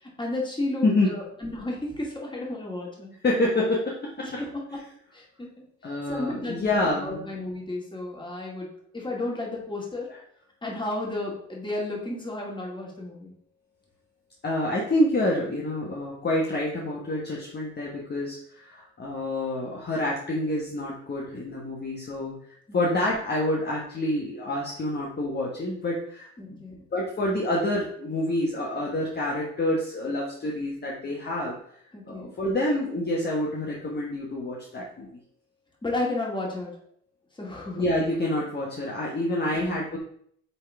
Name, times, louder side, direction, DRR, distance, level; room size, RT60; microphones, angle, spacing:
voice 1, 0.0-3.1 4.2-4.5 5.1-8.7 8.9-10.1 10.6-13.3 22.7-22.9 26.4-26.8 31.9-32.3 35.8-36.7 37.4-37.8 39.5-39.8, left 2 dB, 15° left, -2 dB, 2.2 m, -33 dB
voice 2, 3.2-4.5 5.8-7.3 14.4-22.3 22.7-26.6 26.9-31.5 32.1-35.1 37.8-40.0, left 1 dB, 35° left, -3 dB, 1.3 m, -27 dB
8.4 x 3.7 x 3.5 m, 0.66 s
cardioid pair, 90°, 30 cm